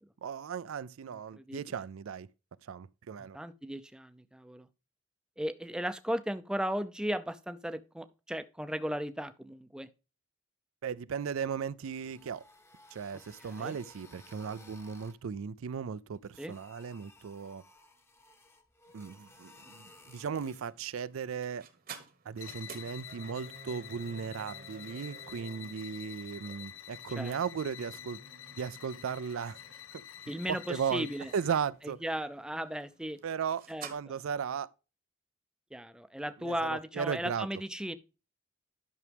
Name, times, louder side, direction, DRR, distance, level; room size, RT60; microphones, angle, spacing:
voice 1, 0.2-2.3 2.7-3.4 10.8-12.4 12.9-17.6 18.9-21.6 22.3-28.2 28.6-29.6 29.9-30.0 30.5-31.1 31.3-32.0 33.2-33.6 33.9-34.7 36.4-37.5, right 6 dB, 80° right, 0.4 m, -36 dB
voice 2, 3.3-4.7 5.4-9.9 13.4-13.8 16.4-16.6 27.2-27.4 30.3-31.3 31.8-33.2 33.7-34.2 35.7-38.0, equal, 5° right, 0.4 m, -36 dB
sound 1, 11.7-15.2 16.1-20.7, left 2 dB, 10° left, 0.8 m, -58 dB
sound 2, 18.9-33.9, right 5 dB, 45° right, 1.0 m, -53 dB
sound 3, 22.3-31.7, left 11 dB, 70° left, 0.5 m, -48 dB
11.0 x 6.1 x 3.4 m
head